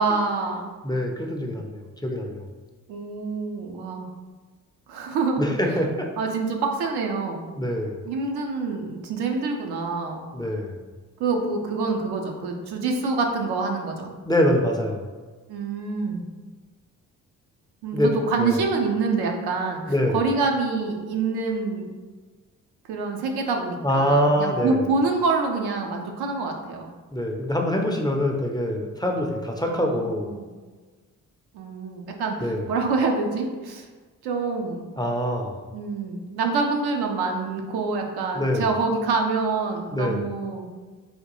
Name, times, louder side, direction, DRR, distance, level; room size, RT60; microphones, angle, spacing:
voice 1, 0.0-0.7 2.9-4.1 4.9-5.8 6.2-7.4 8.0-10.3 11.2-14.1 15.5-16.3 17.8-21.8 22.9-26.9 29.7-30.5 31.5-33.9 34.2-34.9 35.7-40.7, right 4 dB, 75° right, 2 dB, 0.6 m, -26 dB
voice 2, 0.8-2.4 5.4-6.1 7.6-8.0 10.3-10.7 14.2-15.0 17.9-18.1 18.4-18.6 19.9-20.2 23.8-24.8 27.1-30.3 32.4-32.6 35.0-35.6 38.3-38.7 39.9-40.2, equal, 10° left, 1 dB, 0.5 m, -24 dB
3.6 x 2.2 x 2.9 m, 1.4 s
hypercardioid pair, 45°, 39 cm